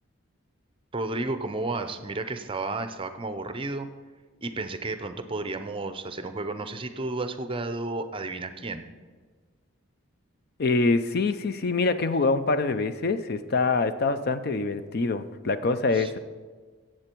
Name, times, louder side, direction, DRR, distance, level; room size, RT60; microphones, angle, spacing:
voice 1, 0.9-3.9 4.4-8.9 15.9-16.1, right 2 dB, 25° right, 9 dB, 0.6 m, -32 dB
voice 2, 10.6-16.2, left 3 dB, 45° left, 12 dB, 0.5 m, -25 dB
15.5 x 7.6 x 4.5 m, 1.5 s
head